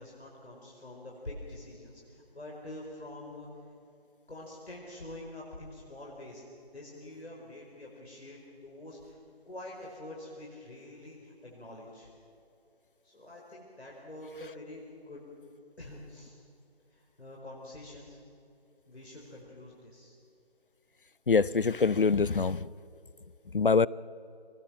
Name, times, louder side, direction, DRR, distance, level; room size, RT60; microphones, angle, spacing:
voice 1, 0.0-3.5 4.3-6.4 6.7-9.2 9.5-12.1 13.0-15.2 15.8-16.3 16.9-18.2 18.9-20.2, left 1 dB, 85° left, 5.2 m, -46 dB
voice 2, 21.3-22.6 23.5-23.9, left 4 dB, 55° left, 0.5 m, -24 dB
23.5 x 19.5 x 6.1 m
figure-of-eight pair, 180°, 31 cm